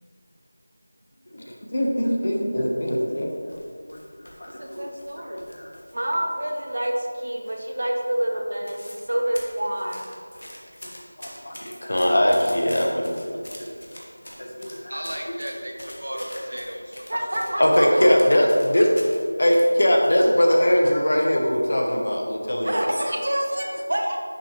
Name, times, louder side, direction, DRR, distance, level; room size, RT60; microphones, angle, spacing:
voice 1, 1.3-3.3 3.9-4.8 5.2-5.7 11.2-13.4 14.4-15.0 17.6-18.9 19.4-23.0, equal, 45° left, 1 dB, 0.9 m, -21 dB
sound 1, 3.3-6.0 6.3-7.1 7.4-7.8 8.1-8.2 8.4-9.1 9.3-19.2 19.5-20.8 21.1-21.2 21.8-22.2 22.6-22.8, left 1 dB, 75° left, 1.5 m, -43 dB
voice 2, 4.4-5.4 5.9-10.1 10.8-10.9 17.1-18.1 22.6-24.2, right 1 dB, 50° right, 1 dB, 1.0 m, -27 dB
voice 3, 14.9-17.5, equal, 75° right, 0 dB, 1.3 m, -35 dB
10.0 x 4.5 x 3.1 m, 2.1 s
figure-of-eight pair, 175°, 0 cm